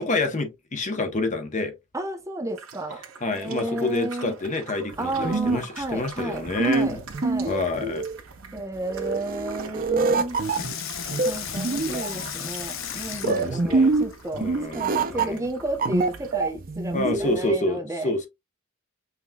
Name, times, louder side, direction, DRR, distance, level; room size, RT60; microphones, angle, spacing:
voice 1, 0.0-1.7 3.2-7.0 7.5-8.0 11.9-12.0 13.1-13.9 14.4-15.5 16.9-18.3, left 2 dB, 35° left, 0.8 m, -28 dB
voice 2, 1.9-3.0 3.3-4.3 5.0-7.5 8.5-10.4 11.2-14.5 14.7-18.1, right 1 dB, 15° right, 0.8 m, -32 dB
sound 1, 2.5-16.3, right 5 dB, 80° right, 0.9 m, -45 dB
sound 2, 4.9-17.5, right 3 dB, 45° right, 0.5 m, -26 dB
Water tap faucet / Sink (filling or washing), 7.4-8.0 10.3-14.3 14.9-15.0, left 8 dB, 70° left, 0.7 m, -35 dB
5.7 x 3.0 x 2.2 m
head